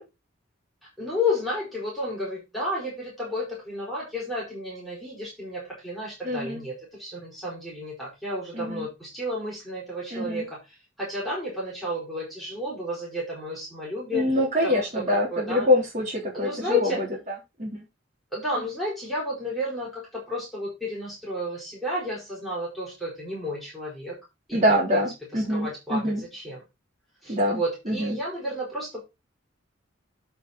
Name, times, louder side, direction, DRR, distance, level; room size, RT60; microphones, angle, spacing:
voice 1, 1.0-14.3 14.6-15.7 16.3-17.0 18.3-24.2 24.5-25.0 25.3-26.6 27.2-29.0, left 1 dB, ahead, -6 dB, 4.8 m, -32 dB
voice 2, 6.2-6.6 8.5-8.9 10.1-10.4 14.1-16.9 17.6-17.8 24.5-26.2 27.3-27.6 27.9-28.2, left 1 dB, 40° right, -3 dB, 3.7 m, -24 dB
8.4 x 6.3 x 4.1 m, 0.24 s
head